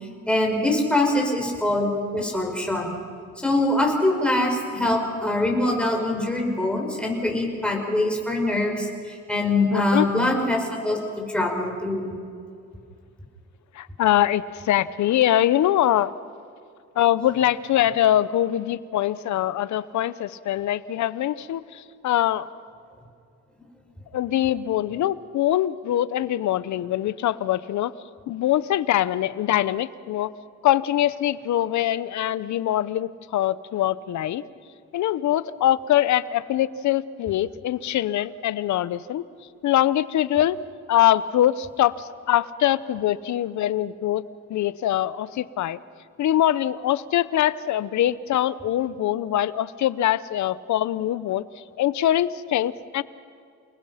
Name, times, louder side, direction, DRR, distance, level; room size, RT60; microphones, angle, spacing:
voice 1, 0.3-3.0 3.4-12.1, left 1 dB, 5° left, 0 dB, 5.8 m, -23 dB
voice 2, 9.7-10.1 13.8-16.1 17.0-22.5 24.1-27.9 28.3-30.3 30.6-34.4 34.9-39.2 39.6-40.6 40.9-45.8 46.2-51.4 51.8-53.0, left 12 dB, 70° left, 17 dB, 0.8 m, -23 dB
29.0 x 20.0 x 5.8 m, 2.4 s
cardioid pair, 90°, 30 cm